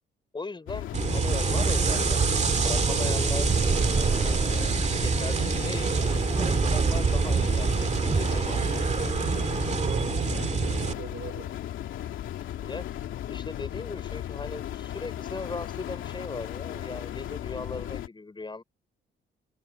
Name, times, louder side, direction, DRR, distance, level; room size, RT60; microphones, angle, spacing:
voice 1, 0.3-3.6 4.0-6.0 6.4-8.7 12.6-12.9 13.2-18.6, left 3 dB, 25° left, 5.6 m, -39 dB
sound 1, 0.7-18.1, left 12 dB, 80° left, 2.7 m, -36 dB
sound 2, 0.9-10.9, right 5 dB, 35° right, 2.2 m, -25 dB
voice 2, 9.7-11.6, right 11 dB, 75° right, 3.1 m, -44 dB
cardioid pair, 90°, 20 cm